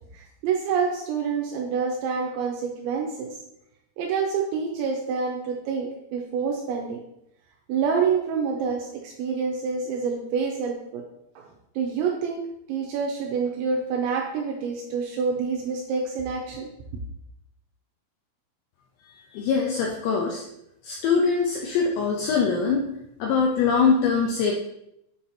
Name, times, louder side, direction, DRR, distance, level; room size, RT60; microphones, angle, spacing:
voice 1, 0.4-3.3 4.0-7.0 7.7-11.0 11.4-11.5 11.8-12.4 12.7-16.7, right 5 dB, 85° right, 1 dB, 2.7 m, -27 dB
voice 2, 19.3-20.4 20.8-22.9 23.2-24.5, left 5 dB, 85° left, -1 dB, 2.5 m, -23 dB
8.4 x 7.2 x 2.8 m, 0.81 s
omnidirectional pair, 6.0 m